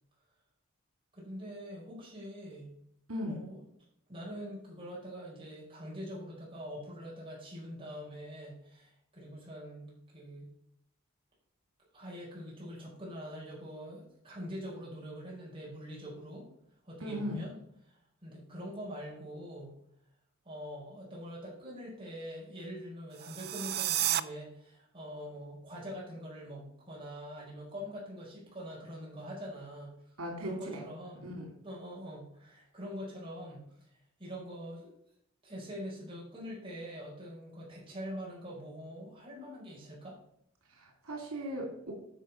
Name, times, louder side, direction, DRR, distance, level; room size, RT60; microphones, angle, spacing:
voice 1, 1.1-2.7 3.3-3.6 4.1-10.5 11.9-16.5 16.9-17.5 17.8-19.8 20.4-31.3 31.6-33.9 34.2-34.9 35.4-40.2, equal, 25° right, -6 dB, 4.9 m, -44 dB
voice 2, 3.1-3.5 17.0-17.4 30.2-30.9 31.2-31.5 40.7-41.9, equal, 90° right, 1 dB, 2.6 m, -38 dB
sound 1, 23.1-24.2, right 13 dB, 45° right, 0.4 m, -31 dB
10.5 x 5.8 x 5.6 m, 0.72 s
head